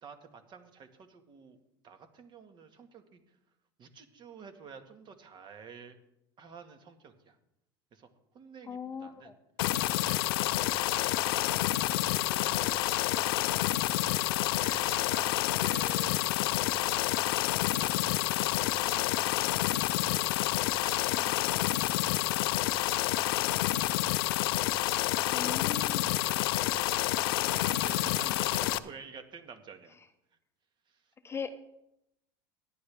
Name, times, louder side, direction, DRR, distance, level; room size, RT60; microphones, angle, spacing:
voice 1, 0.0-1.6 1.8-3.2 3.8-6.0 6.4-7.4 7.9-8.1 8.3-9.3 10.0-17.1 17.5-20.5 20.8-22.7 23.3-23.7 24.4-24.5 25.4-27.0 27.5-29.9, right 6 dB, 40° right, 7 dB, 1.9 m, -50 dB
voice 2, 8.7-9.3 25.3-26.1 28.2-28.3 31.2-31.5, left 6 dB, 20° left, 9 dB, 0.8 m, -39 dB
sound 1, 9.6-28.8, left 16 dB, 80° left, 0.6 m, -29 dB
16.5 x 10.5 x 3.6 m, 0.82 s
supercardioid pair, 110°, 12 cm